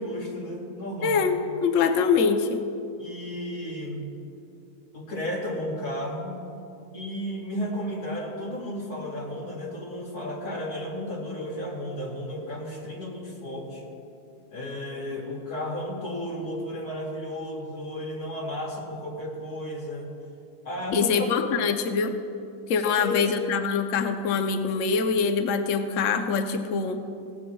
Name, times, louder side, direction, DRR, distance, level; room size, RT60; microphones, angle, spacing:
voice 1, 0.0-1.2 3.0-4.1 4.9-6.4 6.9-13.8 14.5-20.1 20.6-21.3 22.8-23.3, left 1 dB, 75° left, -3 dB, 2.7 m, -33 dB
voice 2, 1.0-2.6 20.9-22.1 22.7-27.0, left 5 dB, 60° left, 7 dB, 1.0 m, -24 dB
18.0 x 15.0 x 2.3 m, 2.6 s
omnidirectional pair, 1.7 m